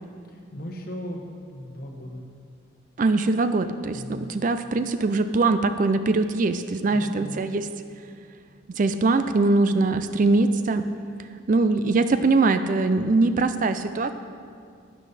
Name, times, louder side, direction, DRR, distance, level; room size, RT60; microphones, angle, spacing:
voice 1, 0.3-2.2 3.9-4.4 6.9-7.4, equal, 45° left, 1 dB, 1.4 m, -37 dB
voice 2, 3.0-7.7 8.7-10.8 11.5-14.1, right 3 dB, 40° right, 10 dB, 0.4 m, -22 dB
12.5 x 9.9 x 4.1 m, 2.2 s
head